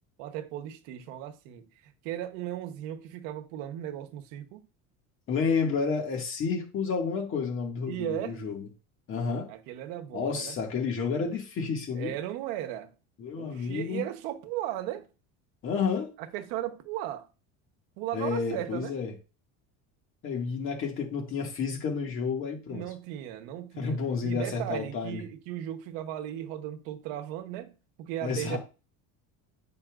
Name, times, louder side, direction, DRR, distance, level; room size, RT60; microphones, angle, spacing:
voice 1, 0.2-4.6 7.9-8.4 9.5-10.6 11.9-12.9 13.3-15.1 16.2-17.3 18.0-18.9 22.7-24.0 24.2-27.7 28.0-28.6, right 12 dB, 80° right, 1.0 m, -36 dB
voice 2, 5.3-8.7 9.1-9.5 10.1-12.1 13.2-14.0 15.6-16.1 18.1-19.1 20.2-22.9 23.8-25.2 28.2-28.6, left 5 dB, 35° left, 2.0 m, -30 dB
8.9 x 5.6 x 2.5 m
cardioid pair, 150°, 35 cm